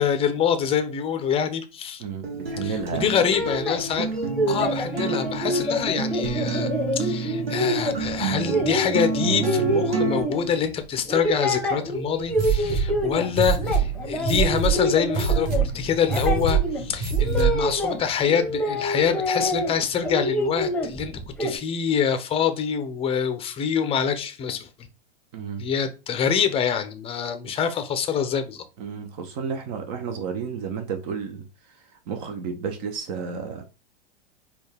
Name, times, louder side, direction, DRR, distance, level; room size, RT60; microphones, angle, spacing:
voice 1, 0.0-2.0 2.6-4.1 4.5-21.1 21.4-24.7 25.6-28.6, left 7 dB, 20° left, 0.5 m, -25 dB
voice 2, 2.0-3.1 25.3-25.6 28.8-31.5 32.1-33.6, right 6 dB, 45° right, 0.7 m, -31 dB
Acoustic guitar, 2.2-10.2, right 4 dB, 85° right, 1.0 m, -29 dB
sound 1, 3.1-10.7 11.1-13.3 13.6-18.0 18.3-19.7 20.0-21.6, equal, 5° left, 0.9 m, -27 dB
sound 2, 12.3-17.7, right 6 dB, 30° right, 1.4 m, -25 dB
4.2 x 2.3 x 3.3 m
hypercardioid pair, 100°, 30 cm